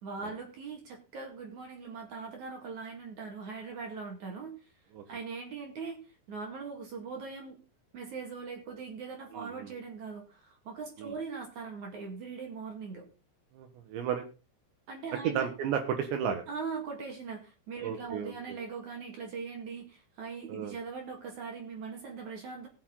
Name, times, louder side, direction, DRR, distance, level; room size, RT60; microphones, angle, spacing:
voice 1, 0.0-4.7 5.1-7.6 7.9-13.1 14.9-15.5 16.5-22.7, right 5 dB, 50° right, 2 dB, 2.9 m, -41 dB
voice 2, 9.3-9.7 11.0-11.1 13.5-14.2 15.2-16.4 17.8-18.6 20.5-20.8, right 8 dB, 75° right, 4 dB, 3.6 m, -33 dB
18.0 x 7.1 x 4.0 m, 0.31 s
omnidirectional pair, 5.3 m